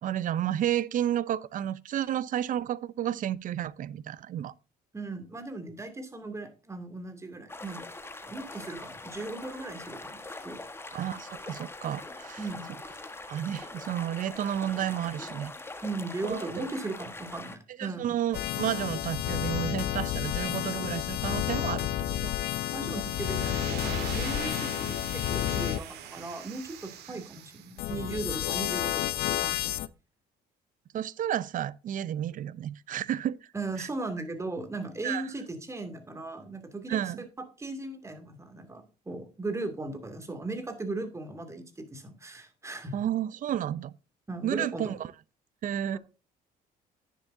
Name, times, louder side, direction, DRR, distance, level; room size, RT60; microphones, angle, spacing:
voice 1, 0.0-4.5 10.9-12.4 13.3-15.5 16.2-16.7 17.8-21.9 22.2-22.3 27.1-27.2 30.9-33.4 33.8-33.9 35.0-35.2 36.9-37.2 42.9-43.9 44.4-45.1 45.6-46.0, right 11 dB, 50° right, 0.6 m, -31 dB
voice 2, 4.9-7.8 8.2-10.6 12.4-12.7 15.8-18.2 22.7-24.7 25.1-29.9 33.5-37.3 37.6-43.0 44.3-44.9 45.9-46.0, right 2 dB, 15° right, 2.4 m, -37 dB
sound 1, 7.5-17.6, left 2 dB, 15° left, 1.4 m, -43 dB
sound 2, 18.3-25.8 27.8-29.9, left 13 dB, 75° left, 0.6 m, -31 dB
sound 3, 22.9-27.8, right 9 dB, 75° right, 2.0 m, -42 dB
10.5 x 10.0 x 2.7 m
cardioid pair, 110°, 17 cm